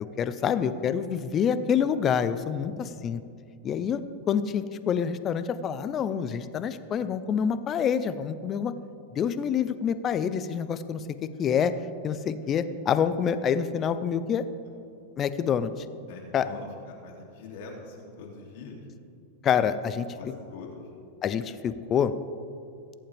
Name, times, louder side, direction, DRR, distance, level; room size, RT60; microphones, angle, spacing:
voice 1, 0.2-3.2 3.6-4.0 4.3-8.7 9.1-11.0 11.4-11.7 12.0-14.4 15.2-15.7 16.3-16.5 19.4-20.1 21.2-22.1, left 7 dB, 30° left, 12 dB, 0.7 m, -27 dB
voice 2, 2.7-3.1 16.1-18.9 20.2-20.8, left 3 dB, 65° left, -1 dB, 3.0 m, -44 dB
22.0 x 8.6 x 3.5 m, 2.6 s
hypercardioid pair, 125°, 0 cm